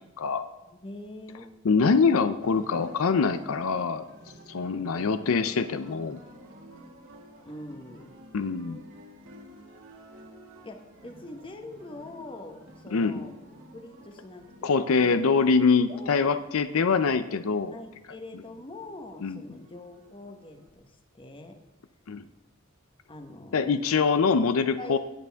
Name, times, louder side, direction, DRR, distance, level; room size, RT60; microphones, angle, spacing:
voice 1, 0.6-1.5 4.7-5.0 7.4-8.1 10.6-13.3 13.7-15.2 15.9-16.3 17.7-21.6 23.1-23.7 24.8-25.0, left 2 dB, 25° left, 5 dB, 1.2 m, -44 dB
voice 2, 1.6-4.0 4.5-6.2 8.3-8.8 12.9-13.1 14.6-17.7 19.2-19.4 22.1-22.2 23.5-25.0, left 5 dB, 80° left, 11 dB, 0.5 m, -24 dB
sound 1, 2.4-20.7, equal, 65° right, 2.0 m, -51 dB
18.5 x 6.9 x 3.5 m, 1.1 s
head